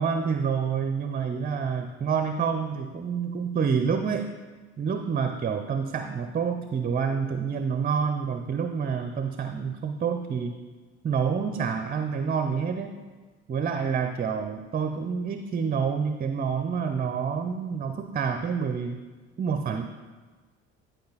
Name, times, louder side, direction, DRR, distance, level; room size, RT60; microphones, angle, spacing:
voice 1, 0.0-4.3 4.8-10.6 11.0-13.0 13.5-19.0 19.4-19.8, right 6 dB, 25° right, 7 dB, 0.7 m, -28 dB
11.5 x 5.0 x 4.1 m, 1.4 s
hypercardioid pair, 70°, 32 cm